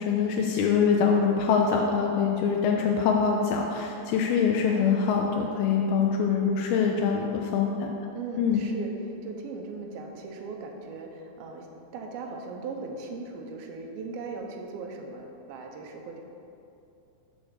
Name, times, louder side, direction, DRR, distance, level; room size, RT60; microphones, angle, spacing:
voice 1, 0.0-7.9 8.4-8.6, left 6 dB, 85° left, 0 dB, 2.5 m, -24 dB
voice 2, 8.1-11.7 11.9-16.2, right 4 dB, 85° right, 2 dB, 2.7 m, -38 dB
8.2 x 4.2 x 6.8 m, 2.7 s
omnidirectional pair, 4.3 m